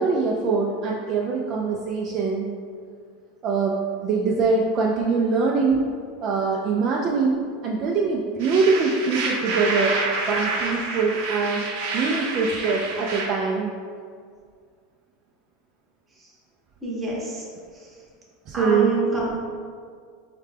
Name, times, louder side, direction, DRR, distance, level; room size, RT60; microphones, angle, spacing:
voice 1, 0.0-2.5 3.4-5.9 6.2-10.0 10.3-11.6 11.9-13.7 18.5-19.0, right 4 dB, 35° right, -2 dB, 0.3 m, -23 dB
sound 1, 8.4-13.3, right 3 dB, 65° right, 0.7 m, -28 dB
voice 2, 16.8-17.4 18.5-19.4, right 1 dB, 10° right, -5 dB, 0.8 m, -27 dB
4.7 x 2.2 x 3.3 m, 2.1 s
supercardioid pair, 150°, 0 cm